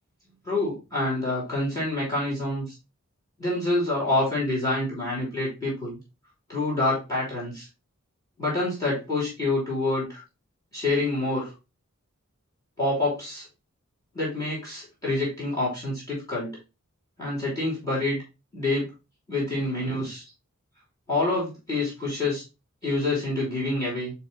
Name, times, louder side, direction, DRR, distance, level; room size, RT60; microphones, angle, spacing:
voice 1, 0.4-2.7 3.4-6.0 6.5-7.7 8.4-10.2 10.7-11.5 12.8-13.4 14.1-16.6 17.2-18.2 18.5-18.9 19.3-20.2 21.1-22.4 22.8-24.1, left 2 dB, 15° left, -5 dB, 3.2 m, -27 dB
9.8 x 3.4 x 2.8 m, 0.27 s
head